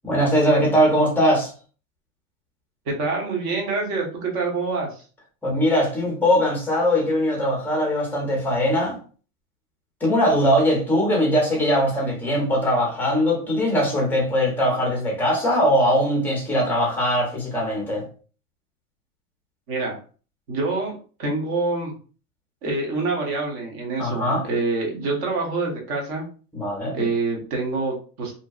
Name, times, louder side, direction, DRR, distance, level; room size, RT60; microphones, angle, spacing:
voice 1, 0.0-1.5 5.4-9.0 10.0-18.0 24.0-24.5 26.5-27.0, equal, 5° left, 0.6 m, -21 dB
voice 2, 2.9-5.0 19.7-20.0 20.5-21.9 22.6-26.2 26.9-28.3, right 3 dB, 40° right, 1.0 m, -26 dB
2.7 x 2.1 x 2.4 m
hypercardioid pair, 135°, 44 cm